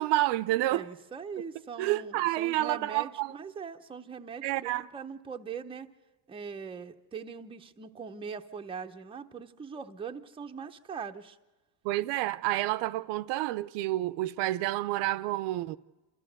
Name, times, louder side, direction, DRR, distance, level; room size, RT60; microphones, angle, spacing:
voice 1, 0.0-0.9 1.8-3.3 4.4-4.9 11.8-15.8, right 16 dB, 65° right, 0.7 m, -29 dB
voice 2, 0.7-5.9 6.3-11.4, right 6 dB, 10° right, 0.7 m, -41 dB
27.5 x 14.0 x 7.9 m
cardioid pair, 160°, 46 cm